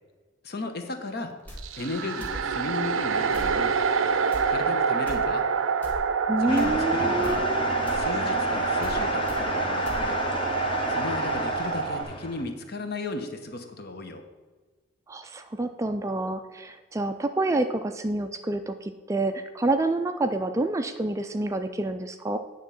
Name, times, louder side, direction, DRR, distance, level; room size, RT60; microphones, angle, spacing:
voice 1, 0.4-1.3 1.7-3.8 4.5-5.5 6.4-7.5 7.9-10.2 10.9-14.2, left 2 dB, 55° left, 6 dB, 0.9 m, -34 dB
sound 1, 1.4-1.6 2.2-2.4 3.3-3.6 4.3-4.4 5.0-5.2 5.8-6.0 6.6-6.8 7.2-7.4 7.9-8.0 8.8-9.0 9.3-9.4 9.8-10.0, equal, 10° left, 1.3 m, -38 dB
sound 2, 1.6-12.0, right 5 dB, 85° right, 0.5 m, -27 dB
voice 2, 6.3-7.7 15.1-22.4, right 2 dB, 15° right, 8 dB, 0.3 m, -28 dB
sound 3, 6.5-12.4, left 2 dB, 25° left, 1.0 m, -31 dB
9.5 x 3.7 x 6.9 m, 1.3 s
head